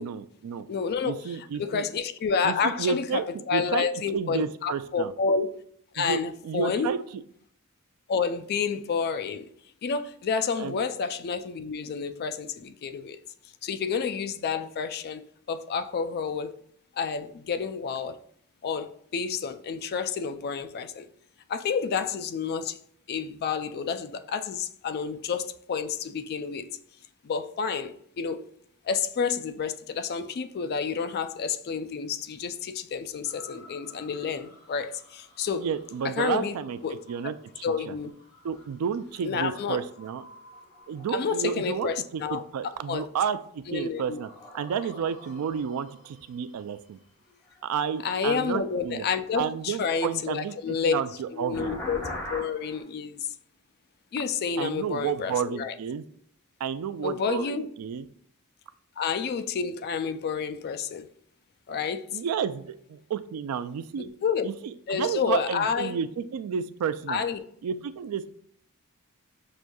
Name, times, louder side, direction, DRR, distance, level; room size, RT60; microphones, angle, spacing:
voice 1, 0.0-0.7 1.0-1.9 2.4-3.3 3.5-3.9 4.1-5.1 6.0-7.0 10.6-10.8 35.6-36.8 37.1-37.9 38.4-40.2 40.9-44.3 44.5-47.0 47.6-49.0 49.4-51.8 54.6-56.0 56.6-58.1 62.1-64.1 64.4-67.2 67.6-68.3, right 7 dB, 80° right, 0.3 m, -31 dB
voice 2, 0.7-5.6 5.9-6.9 8.1-9.5 9.8-13.2 13.6-15.2 15.5-16.6 17.0-18.2 18.6-21.1 21.5-22.8 23.1-26.7 27.2-28.5 28.8-35.7 36.2-36.5 36.8-37.0 37.6-38.1 39.2-39.8 41.1-42.4 42.9-43.1 43.7-44.2 48.0-51.0 51.3-53.3 54.1-55.7 57.0-57.7 59.0-61.1 61.7-62.2 64.0-64.5 64.9-66.0 67.1-67.4, left 6 dB, 45° left, 0.3 m, -29 dB
sound 1, 33.2-42.8 43.3-48.7 50.6-52.8, left 1 dB, 15° left, 1.6 m, -46 dB
6.0 x 2.6 x 2.2 m
head